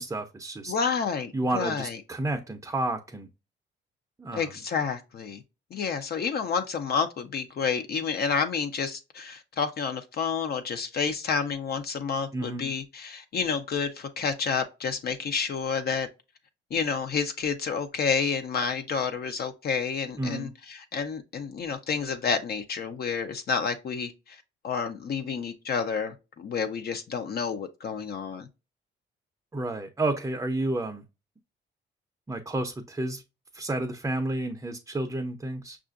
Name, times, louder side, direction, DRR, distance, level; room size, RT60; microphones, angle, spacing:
voice 1, 0.0-0.7 1.3-3.3 4.2-4.5 12.3-12.7 20.2-20.5 29.5-31.0 32.3-33.2 33.5-35.8, right 2 dB, 15° right, 0.5 m, -31 dB
voice 2, 0.7-2.0 4.3-5.4 5.7-16.1 16.7-24.4 24.6-28.5, left 6 dB, 55° left, 0.6 m, -29 dB
5.5 x 2.4 x 2.4 m
cardioid pair, 90°, 20 cm